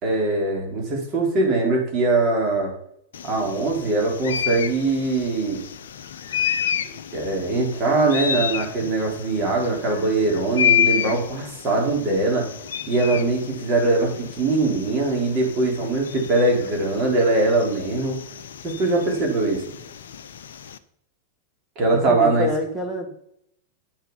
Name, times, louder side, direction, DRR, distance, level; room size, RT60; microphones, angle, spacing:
voice 1, 0.0-2.7 3.2-5.6 7.1-12.5 12.9-18.2 18.6-19.6 21.8-22.5, right 2 dB, 35° right, 0 dB, 3.8 m, -22 dB
sound 1, 3.1-20.8, left 9 dB, 60° left, 0.6 m, -30 dB
voice 2, 21.9-23.2, left 1 dB, ahead, -1 dB, 1.6 m, -27 dB
9.9 x 6.7 x 5.6 m, 0.72 s
figure-of-eight pair, 90°, 0 cm